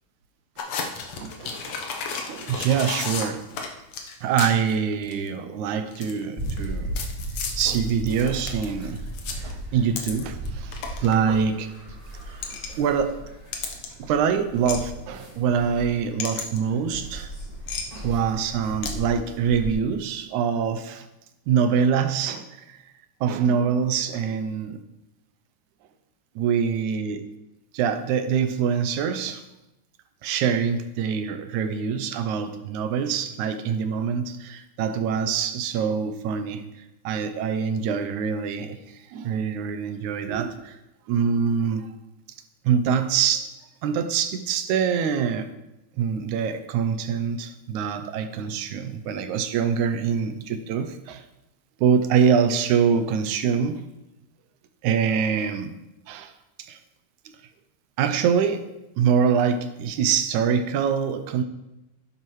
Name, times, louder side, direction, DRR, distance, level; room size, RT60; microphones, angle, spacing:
sound 1, 0.6-4.8 5.0-5.3 5.9-6.7 7.0-10.5 10.7-11.2 12.2-12.7 13.5-13.9 14.7-14.8 16.2-16.6 17.7-17.8 18.8-18.9, left 6 dB, 60° left, 1.9 m, -32 dB
voice 1, 1.2-3.5 4.2-6.9 7.3-9.0 9.4-11.7 12.3-13.2 14.0-17.3 18.0-21.1 21.5-22.9 23.2-24.8 26.4-27.3 27.7-29.4 30.2-36.6 37.0-40.8 41.1-42.0 42.6-43.5 43.8-45.5 46.0-51.2 51.8-53.9 54.8-55.7 56.1-56.3 56.6-56.8 58.0-58.7 59.0-61.4, right 7 dB, 75° right, 8 dB, 1.9 m, -25 dB
sound 2, 6.4-19.7, right 1 dB, 10° right, 2.5 m, -36 dB
12.0 x 10.0 x 3.2 m, 0.94 s
omnidirectional pair, 3.8 m